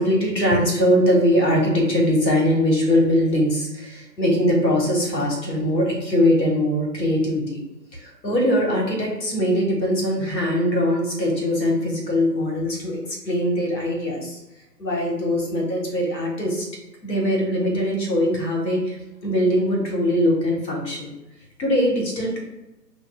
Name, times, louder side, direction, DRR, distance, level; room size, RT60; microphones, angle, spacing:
voice 1, 0.0-7.6 8.0-14.4 14.8-16.6 17.0-21.1 21.6-22.4, equal, 80° left, -1 dB, 1.5 m, -21 dB
4.9 x 2.6 x 2.3 m, 0.95 s
figure-of-eight pair, 140°, 50 cm